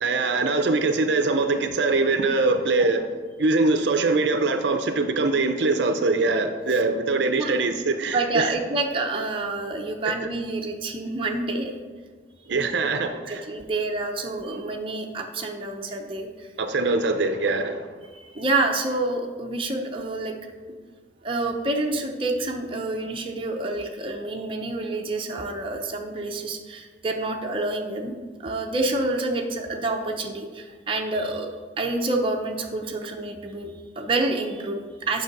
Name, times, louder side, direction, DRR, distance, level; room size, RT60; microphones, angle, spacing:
voice 1, 0.0-3.1 3.4-8.5 12.5-13.5 16.6-17.9, right 3 dB, 70° right, 8 dB, 0.5 m, -23 dB
voice 2, 8.1-11.7 12.4-12.5 13.3-16.5 18.1-20.3 21.2-28.1 28.4-31.5 31.8-35.2, right 2 dB, 30° right, 1 dB, 0.7 m, -28 dB
6.8 x 5.4 x 5.2 m, 1.5 s
head